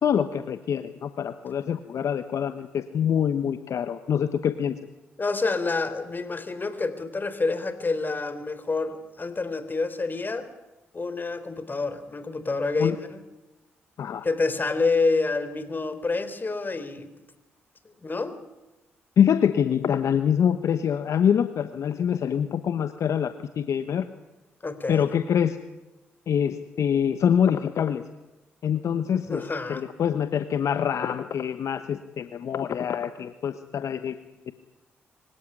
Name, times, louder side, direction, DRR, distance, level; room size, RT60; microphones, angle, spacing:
voice 1, 0.0-4.7 12.8-12.9 14.0-14.2 19.2-24.0 24.9-25.6 26.3-28.0 28.6-29.4 29.7-34.2, left 8 dB, 65° left, 10 dB, 1.1 m, -25 dB
voice 2, 5.2-10.5 10.9-13.2 14.2-17.1 18.0-18.4 24.6-25.1 29.3-29.9, left 3 dB, 35° left, 12 dB, 3.8 m, -28 dB
24.5 x 17.0 x 9.9 m, 1.0 s
hypercardioid pair, 45°, 6 cm